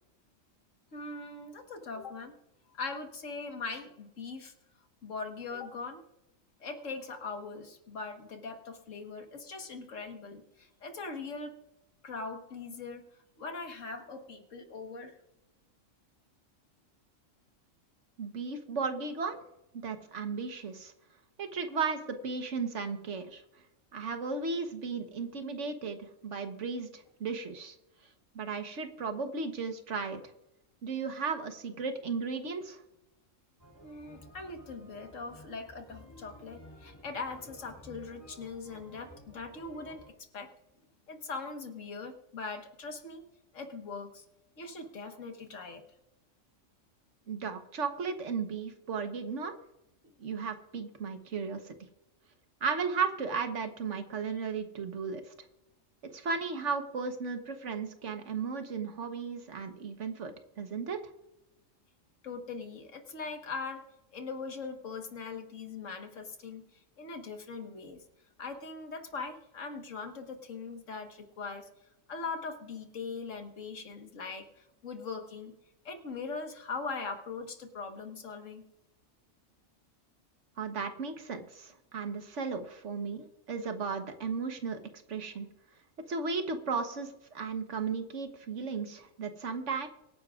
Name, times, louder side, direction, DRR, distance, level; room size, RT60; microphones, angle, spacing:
voice 1, 0.9-2.3 2.7-4.5 5.0-6.0 6.6-11.5 12.0-13.0 13.4-15.2 33.8-40.5 41.1-43.2 43.5-44.3 44.6-45.8 62.2-63.9 64.1-68.0 68.4-71.7 72.1-75.5 75.9-78.6, left 4 dB, 75° left, 5 dB, 1.8 m, -41 dB
voice 2, 18.2-19.4 19.7-20.9 21.4-23.4 23.9-27.7 28.3-30.2 30.8-32.8 47.3-49.5 50.2-51.7 52.6-55.3 56.1-61.0 80.6-84.8 85.1-85.5 86.1-89.9, right 5 dB, 65° right, 7 dB, 1.4 m, -35 dB
sound 1, 33.6-40.1, equal, 20° left, 3.1 m, -53 dB
24.0 x 10.0 x 2.4 m, 0.90 s
omnidirectional pair, 1.3 m